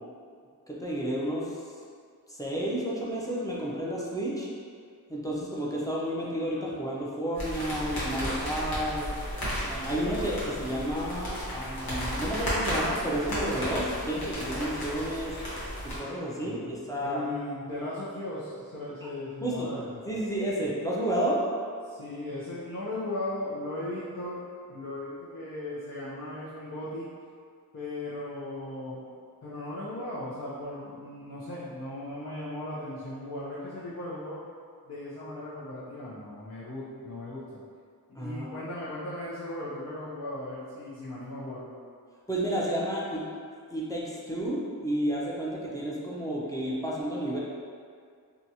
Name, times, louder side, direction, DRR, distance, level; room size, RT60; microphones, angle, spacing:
voice 1, 0.7-1.6 2.3-4.5 5.1-9.0 9.7-15.4 16.0-17.2 19.4-19.7 20.1-21.4 38.1-38.6 42.3-43.3 43.7-47.4, right 1 dB, 10° left, -6 dB, 0.6 m, -31 dB
sound 1, 7.4-16.0, equal, 75° left, 1.0 m, -33 dB
voice 2, 17.0-20.0 21.8-24.4 24.7-27.1 27.7-29.0 29.4-34.4 34.8-37.6 38.1-41.7, left 1 dB, 45° left, -10 dB, 0.6 m, -37 dB
2.8 x 2.3 x 2.7 m, 2.1 s
cardioid pair, 45°, 36 cm